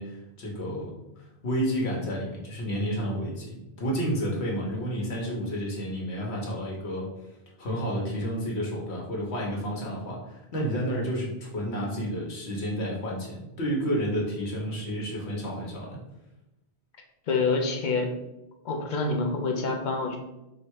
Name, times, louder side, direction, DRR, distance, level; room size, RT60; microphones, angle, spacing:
voice 1, 0.0-7.1 7.6-16.0, equal, 90° left, -2 dB, 1.4 m, -31 dB
voice 2, 17.3-18.1 18.6-20.2, left 3 dB, 50° left, 2 dB, 0.7 m, -27 dB
3.2 x 2.8 x 4.6 m, 0.93 s
omnidirectional pair, 1.1 m